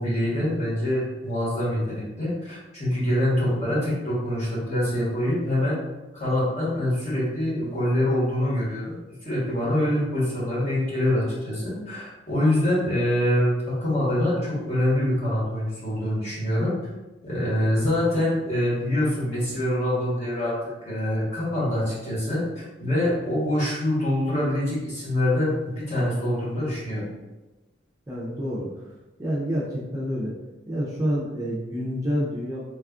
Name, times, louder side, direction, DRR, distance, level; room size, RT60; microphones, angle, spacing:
voice 1, 0.0-5.7 6.1-16.7 17.2-20.5 20.8-22.4 22.8-27.0, left 1 dB, 35° left, -8 dB, 1.2 m, -25 dB
voice 2, 28.1-28.7 29.2-30.3 30.7-32.6, equal, 15° right, -7 dB, 0.4 m, -28 dB
3.4 x 2.3 x 2.3 m, 1.1 s
head